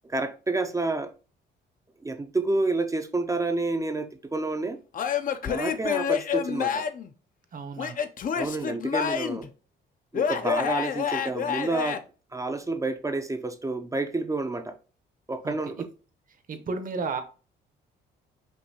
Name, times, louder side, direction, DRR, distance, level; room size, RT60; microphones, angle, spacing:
voice 1, 0.0-1.1 2.0-4.8 5.4-6.9 8.3-9.5 10.1-12.0 12.3-14.8 15.3-15.9, right 2 dB, 15° right, 0.5 m, -29 dB
Male speech man speaking / Yell / Laughter, 4.9-7.1 7.8-9.5 10.1-12.0, left 7 dB, 45° left, 0.5 m, -28 dB
voice 2, 7.5-8.0 15.4-15.8 16.5-17.2, right 4 dB, 45° right, 0.8 m, -33 dB
5.3 x 2.7 x 2.8 m
cardioid pair, 90°, 20 cm